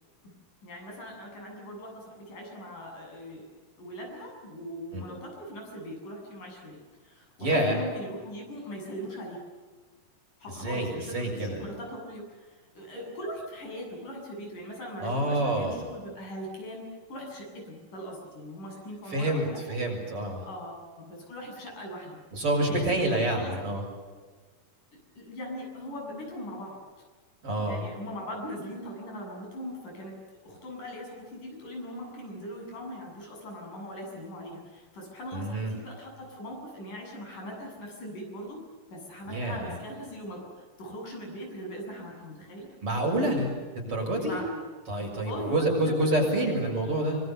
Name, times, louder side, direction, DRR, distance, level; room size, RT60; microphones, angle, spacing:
voice 1, 0.6-3.4 3.8-9.5 10.4-19.6 20.5-22.2 22.6-23.5 25.2-26.8 27.6-30.1 30.4-38.6 38.9-42.7 44.2-44.6 45.1-46.3, equal, 75° left, 0 dB, 9.4 m, -40 dB
voice 2, 7.4-7.8 10.6-11.6 15.0-15.9 19.1-20.4 22.3-23.8 27.4-27.8 35.3-35.7 39.3-39.7 42.8-44.4 44.9-47.2, right 1 dB, 40° right, 0 dB, 7.8 m, -28 dB
25.5 x 25.5 x 7.0 m, 1.4 s
omnidirectional pair, 3.7 m